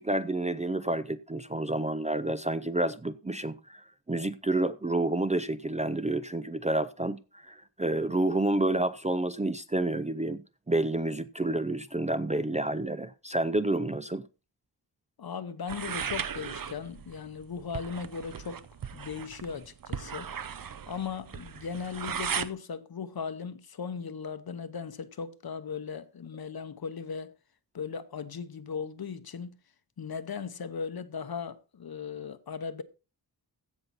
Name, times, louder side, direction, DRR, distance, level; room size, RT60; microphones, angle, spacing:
voice 1, 0.0-14.3, right 2 dB, 15° right, 0.4 m, -29 dB
voice 2, 15.2-18.7 18.9-20.3 20.9-27.3 27.7-29.6 30.0-32.8, left 6 dB, 60° left, 0.9 m, -37 dB
sound 1, 15.7-22.5, right 7 dB, 50° right, 0.7 m, -37 dB
15.5 x 5.8 x 4.1 m
wide cardioid pair, 120°, 42 cm